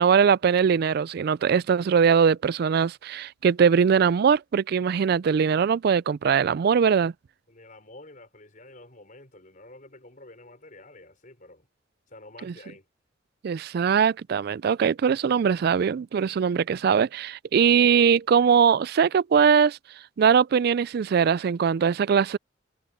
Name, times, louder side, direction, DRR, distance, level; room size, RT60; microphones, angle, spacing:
voice 1, 0.0-7.1 13.4-19.8 20.2-22.4, right 7 dB, 55° right, 0.3 m, -21 dB
voice 2, 7.5-11.7 12.1-12.9, left 2 dB, 45° left, 5.5 m, -49 dB
head